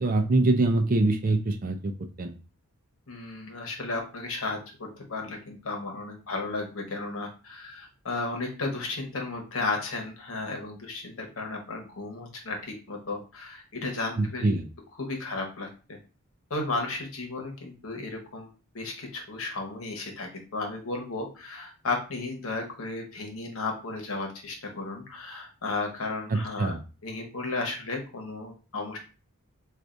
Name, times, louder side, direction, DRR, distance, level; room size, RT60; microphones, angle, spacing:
voice 1, 0.0-1.9 2.2-2.3 14.2-14.7 26.3-26.8, right 2 dB, 40° right, 6 dB, 0.4 m, -24 dB
voice 2, 3.1-14.5 15.0-16.0 16.5-18.5 18.7-26.7 27.0-29.0, left 3 dB, 70° left, 2 dB, 1.0 m, -34 dB
4.6 x 2.4 x 2.5 m, 0.34 s
head